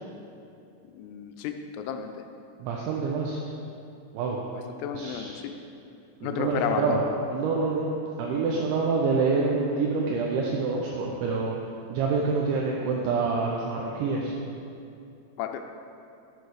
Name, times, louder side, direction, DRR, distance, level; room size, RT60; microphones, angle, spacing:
voice 1, 0.9-2.1 4.5-5.4 6.2-7.0 15.4-15.6, left 8 dB, 90° left, 5 dB, 3.4 m, -32 dB
voice 2, 2.6-3.4 4.1-4.4 4.9-5.4 6.2-7.0 7.3-7.9 8.2-11.6 11.9-14.3, right 4 dB, 75° right, -2 dB, 2.9 m, -27 dB
13.5 x 6.7 x 4.8 m, 2.6 s
omnidirectional pair, 5.9 m